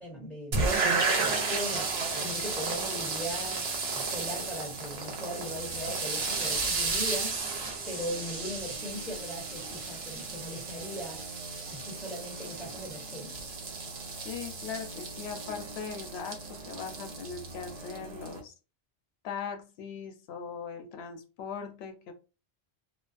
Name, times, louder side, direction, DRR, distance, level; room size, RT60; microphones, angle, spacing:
voice 1, 0.0-1.9 2.2-3.6 3.9-7.3 7.9-11.2 11.6-13.3, equal, ahead, -3 dB, 1.1 m, -39 dB
sound 1, 0.5-18.4, right 4 dB, 90° right, 1.0 m, -33 dB
voice 2, 14.2-18.5 19.2-22.1, left 6 dB, 90° left, 5 dB, 0.8 m, -40 dB
2.4 x 2.2 x 2.4 m, 0.31 s
omnidirectional pair, 1.0 m